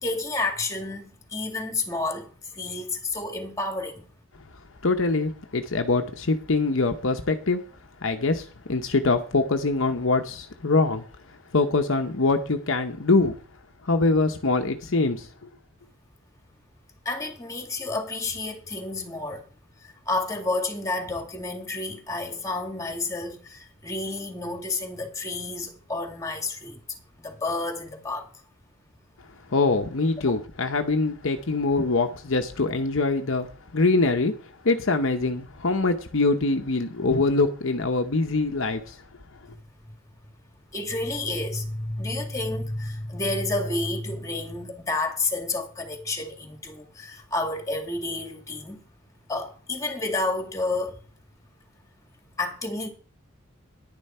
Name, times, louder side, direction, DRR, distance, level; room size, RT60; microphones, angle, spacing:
voice 1, 0.0-4.1 17.1-19.5 19.8-26.8 27.2-28.2 40.7-48.8 49.3-51.0 52.4-52.9, left 2 dB, 15° left, 2.2 m, -30 dB
voice 2, 4.8-7.6 8.0-11.1 11.5-13.4 13.8-15.5 29.5-39.0, left 3 dB, 65° left, 0.9 m, -24 dB
10.5 x 10.0 x 4.4 m
head